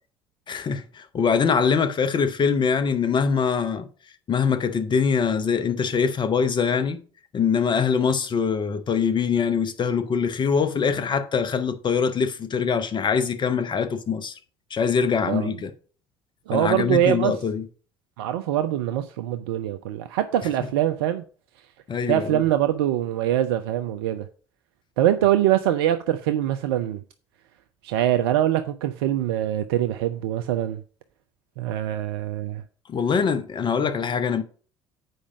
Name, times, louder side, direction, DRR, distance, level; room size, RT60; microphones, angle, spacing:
voice 1, 0.5-3.9 4.3-7.0 7.3-14.3 14.7-15.7 16.5-17.7 21.9-22.4 32.9-34.4, left 6 dB, 35° left, 1.0 m, -23 dB
voice 2, 16.5-17.3 18.2-21.2 22.1-24.3 25.0-27.0 27.8-30.8 31.6-32.6, right 12 dB, 65° right, 0.5 m, -23 dB
7.9 x 4.9 x 4.9 m
figure-of-eight pair, 60°, 14 cm